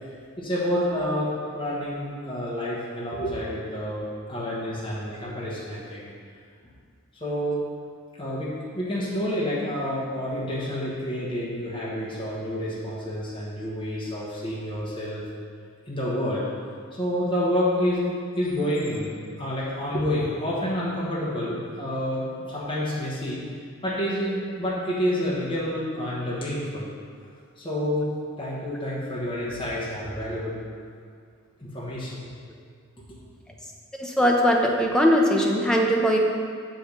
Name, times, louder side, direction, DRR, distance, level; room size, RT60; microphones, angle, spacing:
voice 1, 0.4-6.1 7.1-7.6 8.2-15.2 15.9-16.4 16.9-23.4 23.8-26.9 27.6-28.1 28.4-30.6 31.6-32.2, equal, 25° left, -7 dB, 1.2 m, -28 dB
voice 2, 34.0-36.2, equal, 5° left, -1 dB, 0.5 m, -20 dB
6.7 x 5.1 x 5.2 m, 2.1 s
head